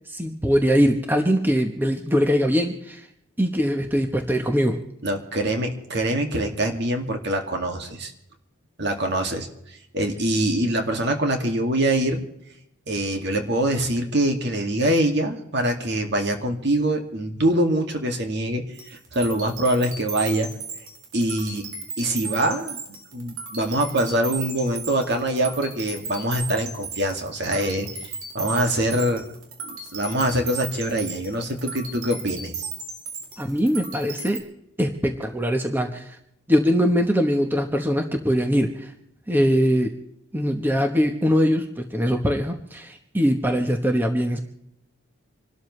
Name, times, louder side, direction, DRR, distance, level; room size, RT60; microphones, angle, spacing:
voice 1, 0.1-3.0 3.4-4.8 33.4-34.4 34.8-36.0 36.5-38.9 39.3-39.9 40.3-44.4, equal, 10° right, 4 dB, 1.1 m, -22 dB
voice 2, 5.0-8.1 8.8-12.2 12.9-20.5 21.1-21.6 22.0-22.8 23.1-29.2 29.7-32.7, right 1 dB, 55° right, 4 dB, 2.2 m, -24 dB
sound 1, 18.7-34.4, right 4 dB, 85° right, 3.5 m, -36 dB
27.0 x 13.0 x 3.2 m, 0.78 s
head